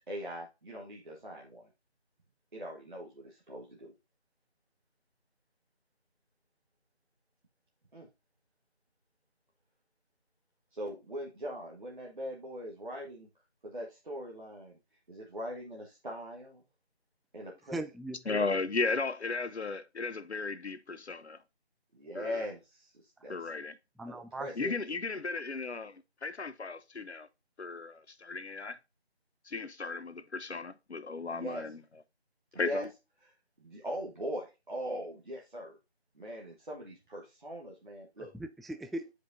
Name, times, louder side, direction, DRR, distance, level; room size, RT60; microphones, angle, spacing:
voice 1, 0.0-1.7 2.5-3.9 7.9-8.1 10.7-13.3 13.6-14.8 15.1-16.6 17.3-17.8 21.9-22.9 23.2-23.5 24.1-24.5 31.3-31.6 32.6-32.9 33.2-33.3 33.6-35.8 36.2-38.3, equal, 50° right, 1.5 m, -41 dB
voice 2, 17.7-18.5 24.0-24.7 38.2-39.1, right 1 dB, ahead, 0.3 m, -39 dB
voice 3, 18.3-21.4 22.1-22.4 23.3-23.8 24.6-27.3 27.6-28.8 29.5-31.8 32.6-32.9, left 4 dB, 80° left, 0.9 m, -35 dB
9.5 x 5.1 x 2.7 m
figure-of-eight pair, 170°, 33 cm